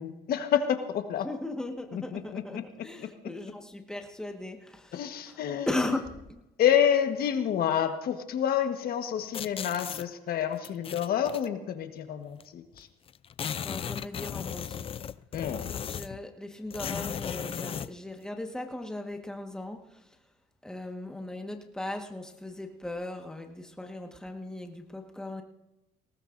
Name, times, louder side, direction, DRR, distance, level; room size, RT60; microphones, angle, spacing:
voice 1, 0.0-1.3 1.9-2.6 4.9-5.7 6.6-12.9 15.3-15.7, left 9 dB, 65° left, 7 dB, 1.4 m, -28 dB
voice 2, 1.2-5.4 5.7-6.4 13.6-15.0 15.8-20.2 20.6-25.4, left 1 dB, 5° left, 3 dB, 1.5 m, -38 dB
sound 1, 9.3-10.0 10.6-11.5 12.4-12.5 12.7-12.8 13.1-16.2 16.7-17.9, left 8 dB, 35° left, 0.4 m, -36 dB
19.5 x 18.5 x 2.6 m, 0.94 s
cardioid pair, 110°, 17 cm